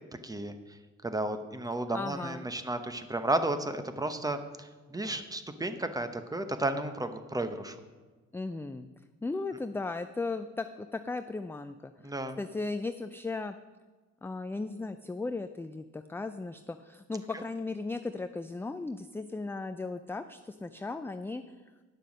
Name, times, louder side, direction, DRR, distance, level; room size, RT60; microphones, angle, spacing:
voice 1, 0.2-0.5 1.0-7.8 12.0-12.4, right 2 dB, 10° right, 9 dB, 0.9 m, -33 dB
voice 2, 1.9-2.5 8.3-8.9 9.2-13.6 14.2-21.4, left 3 dB, 10° left, 9 dB, 0.3 m, -36 dB
9.8 x 6.7 x 6.2 m, 1.3 s
cardioid pair, 90°, 30 cm